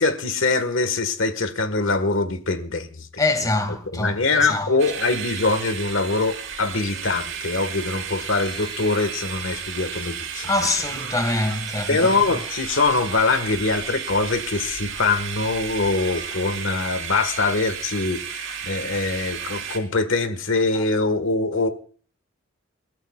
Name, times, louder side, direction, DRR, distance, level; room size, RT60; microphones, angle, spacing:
voice 1, 0.0-3.2 3.9-10.5 11.9-21.7, left 3 dB, 65° left, 1.5 m, -23 dB
voice 2, 3.2-4.7 10.4-12.2 20.7-20.8, left 2 dB, 15° left, 1.8 m, -24 dB
sound 1, 4.8-19.8, right 7 dB, 60° right, 3.4 m, -33 dB
28.0 x 14.0 x 2.4 m
head